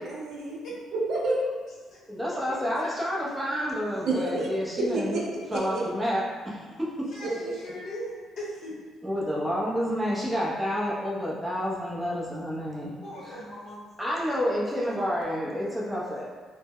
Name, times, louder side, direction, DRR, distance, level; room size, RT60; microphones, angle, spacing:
voice 1, 0.1-0.6 0.9-1.6 4.0-4.5 4.8-5.2 5.5-5.8 7.2-7.3, right 2 dB, 65° right, -3 dB, 0.5 m, -28 dB
voice 2, 2.1-5.2 5.5-7.0 9.0-13.0 13.2-13.4 14.0-16.2, equal, 5° right, -6 dB, 0.5 m, -29 dB
voice 3, 7.1-8.7 13.0-13.9 14.8-14.9 15.3-15.4, equal, 50° left, -6 dB, 0.8 m, -40 dB
2.0 x 2.0 x 3.5 m, 1.5 s
cardioid pair, 135°, 0 cm